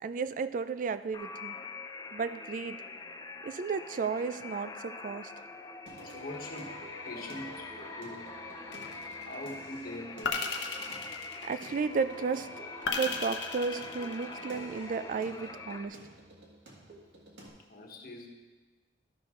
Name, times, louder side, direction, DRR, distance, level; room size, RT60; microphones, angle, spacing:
voice 1, 0.0-1.5 2.1-2.8 3.4-5.3 11.5-12.5 12.9-16.0, right 5 dB, 45° right, 13 dB, 0.3 m, -33 dB
sound 1, 1.1-15.9, left 4 dB, 20° left, 0.4 m, -44 dB
Singing, 5.9-17.5, equal, 75° right, 1.8 m, -49 dB
voice 2, 6.0-6.8 7.0-8.2 9.3-10.6 17.7-18.3, left 1 dB, 55° left, 1 dB, 1.3 m, -43 dB
sound 2, 8.7-9.3 10.2-11.9 12.9-14.6, left 4 dB, 75° left, 0.9 m, -35 dB
12.5 x 6.2 x 3.7 m, 1.3 s
head